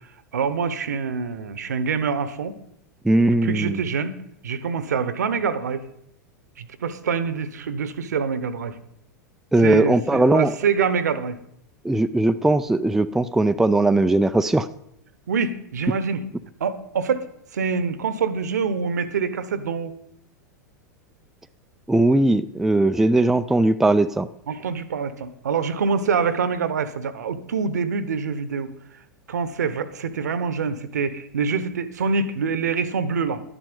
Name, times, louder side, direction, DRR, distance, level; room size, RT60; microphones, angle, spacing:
voice 1, 0.3-2.5 3.4-4.1 4.4-5.9 6.6-8.8 9.6-11.4 15.3-16.2 16.6-19.9 24.5-28.7 29.3-33.4, right 5 dB, 65° right, 15 dB, 1.0 m, -25 dB
voice 2, 3.0-3.8 9.5-10.5 11.8-14.7 21.9-24.3, right 2 dB, 5° right, 10 dB, 0.4 m, -19 dB
12.0 x 10.0 x 5.3 m, 0.74 s
figure-of-eight pair, 90°, 10 cm